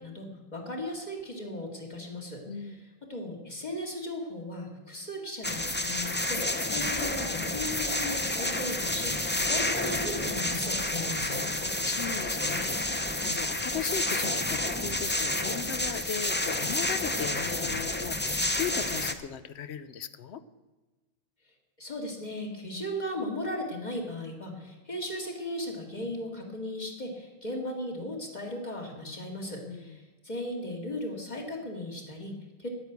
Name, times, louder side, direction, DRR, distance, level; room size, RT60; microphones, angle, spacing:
voice 1, 0.0-2.8 3.1-6.4 6.7-11.4 21.8-32.7, left 1 dB, 40° left, 0 dB, 2.5 m, -37 dB
voice 2, 2.5-2.8 11.6-20.4 29.6-30.0, left 7 dB, 85° left, 14 dB, 1.0 m, -37 dB
sound 1, 5.4-19.1, left 1 dB, 15° left, 0.5 m, -30 dB
10.5 x 9.5 x 8.1 m, 1.2 s
omnidirectional pair, 1.1 m